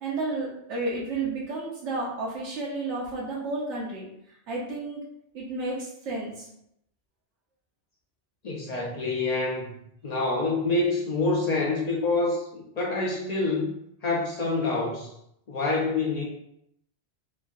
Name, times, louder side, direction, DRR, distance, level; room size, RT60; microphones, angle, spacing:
voice 1, 0.0-4.1 4.5-5.0 5.3-6.5, right 2 dB, 85° right, -4 dB, 1.0 m, -31 dB
voice 2, 8.4-9.7 10.0-15.1 15.5-16.2, left 3 dB, 55° left, -3 dB, 0.4 m, -27 dB
3.0 x 2.6 x 2.3 m, 0.76 s
omnidirectional pair, 1.2 m